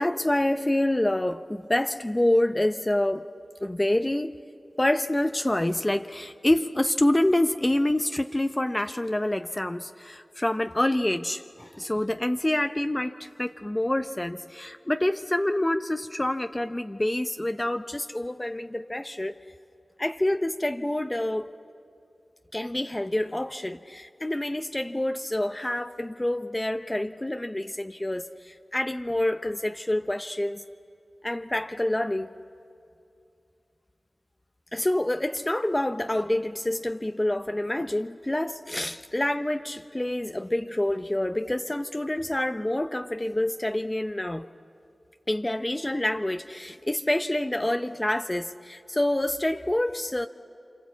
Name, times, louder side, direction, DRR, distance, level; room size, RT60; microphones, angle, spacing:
voice 1, 0.0-3.3 3.6-4.4 4.8-19.4 20.0-21.5 22.5-30.6 31.2-32.3 34.7-44.5 45.3-50.3, left 1 dB, 25° left, 0.7 m, -27 dB
26.5 x 26.0 x 8.3 m
cardioid pair, 45°, 0 cm